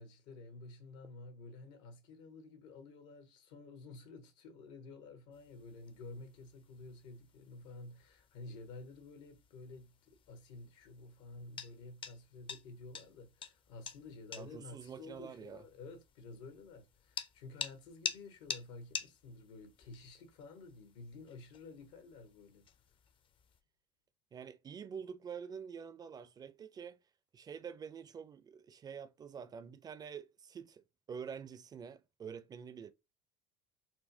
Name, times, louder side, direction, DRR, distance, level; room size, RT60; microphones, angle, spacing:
voice 1, 0.0-22.7, left 3 dB, 80° left, 1.1 m, -51 dB
sound 1, 5.3-23.6, left 6 dB, 35° left, 0.5 m, -49 dB
voice 2, 14.3-15.6 24.3-27.0 27.3-32.9, right 7 dB, 25° right, 0.4 m, -47 dB
4.1 x 2.2 x 2.6 m
supercardioid pair, 95°, 15 cm